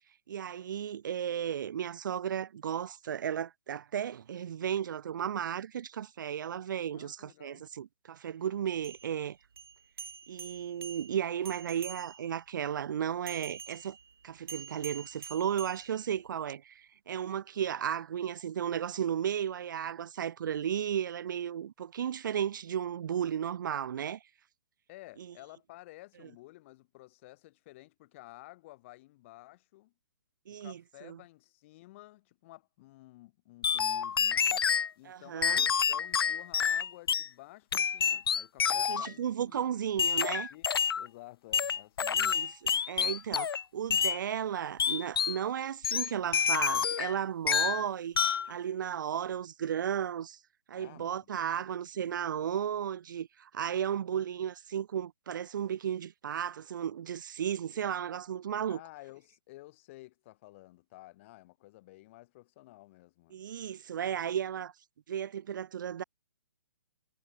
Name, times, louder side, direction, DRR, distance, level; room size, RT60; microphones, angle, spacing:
voice 1, 0.3-9.4 10.3-14.0 14.2-24.2 25.2-25.3 30.5-31.2 35.0-35.6 38.9-40.5 42.1-42.5 42.9-48.2 48.5-50.4 50.7-58.8 63.3-64.7 65.1-66.0, right 9 dB, 55° right, 1.6 m, -34 dB
voice 2, 6.9-7.7 24.9-29.9 30.6-34.7 35.0-39.7 40.5-42.4 50.8-51.7 58.7-63.4, left 19 dB, 35° left, 5.8 m, -53 dB
sound 1, 8.7-12.4 13.3-16.4, right 6 dB, 90° right, 1.6 m, -47 dB
sound 2, 33.6-34.9 35.4-37.3 37.7-39.1 40.0-41.1 41.5-43.6 43.9-44.2 44.8-45.4 45.8-47.2 47.5-47.8 48.2-48.5, left 7 dB, 85° left, 0.7 m, -28 dB
hypercardioid pair, 160°, 12 cm